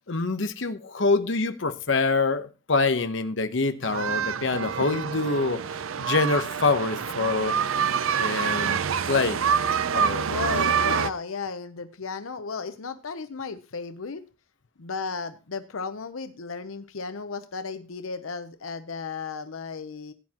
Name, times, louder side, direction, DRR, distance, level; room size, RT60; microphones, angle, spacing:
voice 1, 0.0-5.6 6.0-7.5 8.2-8.8 9.1-9.4 9.9-10.3, left 3 dB, 65° left, 0.9 m, -25 dB
sound 1, 3.8-11.1, right 7 dB, 80° right, 0.5 m, -26 dB
voice 2, 10.3-14.2 14.8-20.1, left 5 dB, 85° left, 0.7 m, -34 dB
16.5 x 9.7 x 2.9 m
head